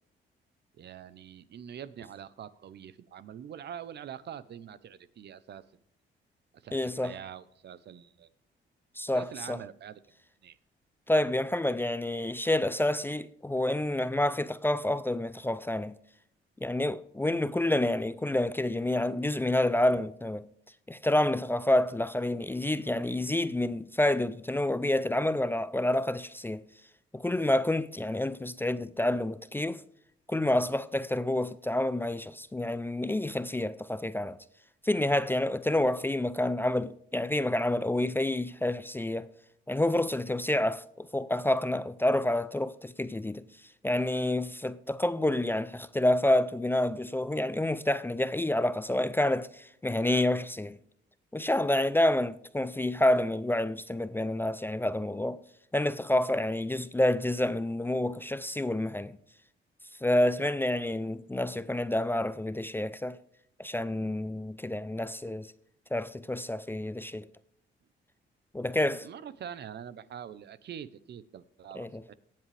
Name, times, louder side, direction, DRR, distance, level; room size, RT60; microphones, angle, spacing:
voice 1, 0.8-5.6 6.5-8.3 9.1-10.0 10.4-10.6 68.8-72.1, right 9 dB, 60° right, 0.8 m, -44 dB
voice 2, 6.7-7.1 9.0-9.6 11.1-15.9 16.6-20.5 20.9-26.6 27.1-29.8 30.3-34.4 34.8-39.3 39.7-43.4 43.8-50.8 51.3-55.4 55.7-59.2 60.0-63.2 63.6-65.5 65.9-67.3 68.5-69.1 71.8-72.0, left 1 dB, 10° left, 0.5 m, -28 dB
17.5 x 7.6 x 3.4 m
cardioid pair, 90°, 20 cm